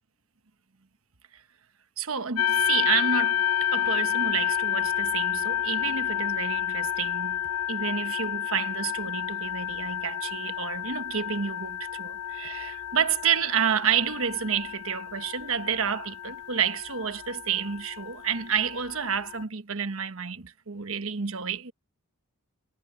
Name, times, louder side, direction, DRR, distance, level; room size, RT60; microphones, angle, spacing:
voice 1, 2.0-3.4 3.7-7.4 7.7-21.7, right 7 dB, 65° right, 1.2 m, -29 dB
sound 1, 2.4-19.4, left 10 dB, 85° left, 0.4 m, -30 dB
head